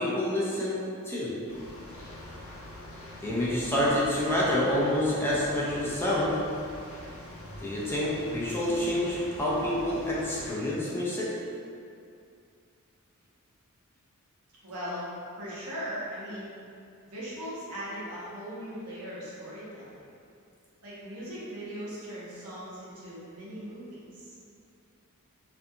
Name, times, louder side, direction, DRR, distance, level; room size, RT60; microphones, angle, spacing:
voice 1, 0.0-1.4 3.2-6.4 7.6-11.3, left 1 dB, 10° left, -8 dB, 0.4 m, -28 dB
sound 1, 1.5-10.5, left 1 dB, 65° left, 0.6 m, -44 dB
voice 2, 14.6-15.1 15.4-16.5 17.1-20.0 20.8-24.3, equal, 85° right, -9 dB, 0.9 m, -39 dB
2.5 x 2.3 x 2.6 m, 2.4 s
head